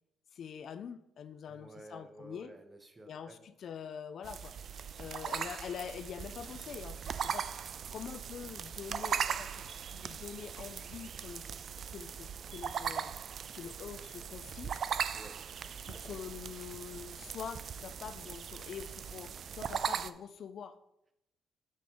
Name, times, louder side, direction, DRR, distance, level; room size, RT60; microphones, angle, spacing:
voice 1, 0.3-2.5 3.1-4.6 5.0-11.6 11.9-13.2 13.5-14.7 15.9-20.8, left 7 dB, 60° left, 12 dB, 0.4 m, -45 dB
voice 2, 1.4-3.4 5.2-5.4 15.1-15.4 15.9-16.2, right 1 dB, 20° right, 7 dB, 0.9 m, -53 dB
sound 1, 4.2-20.1, right 7 dB, 55° right, 0.3 m, -39 dB
7.6 x 3.6 x 5.1 m, 0.84 s
cardioid pair, 90°, 0 cm